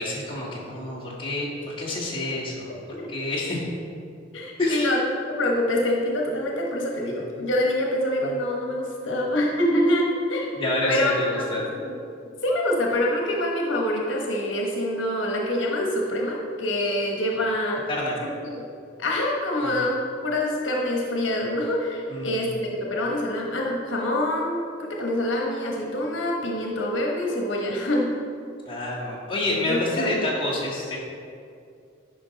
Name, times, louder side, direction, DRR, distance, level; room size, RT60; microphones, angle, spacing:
voice 1, 0.0-1.5 1.8-2.8 3.1-3.6 4.6-4.9 10.6-11.6 17.9-18.2 19.6-19.7 22.1-22.5 28.7-31.0, left 2 dB, 25° left, -6 dB, 1.8 m, -28 dB
voice 2, 4.3-10.5 10.9-12.0 12.4-17.8 18.2-18.7 19.0-28.1 29.7-30.2, left 1 dB, 80° left, -1 dB, 1.1 m, -26 dB
11.0 x 5.3 x 4.0 m, 2.4 s
head